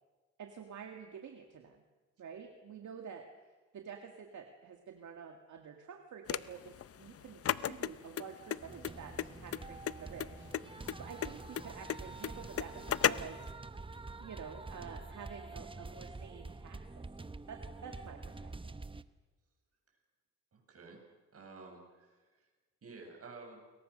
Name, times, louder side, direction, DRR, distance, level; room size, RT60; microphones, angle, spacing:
voice 1, 0.4-1.8 2.2-3.3 3.7-13.5 14.2-18.8, right 6 dB, 70° right, 4 dB, 2.1 m, -49 dB
sound 1, 6.3-13.5, left 9 dB, 50° left, 0.7 m, -35 dB
sound 2, 8.6-19.0, right 3 dB, 15° right, 1.0 m, -47 dB
voice 2, 20.5-21.0 21.3-22.5 22.8-23.6, right 3 dB, 50° right, 1 dB, 7.7 m, -52 dB
28.5 x 22.5 x 6.5 m, 1.3 s
cardioid pair, 95°, 30 cm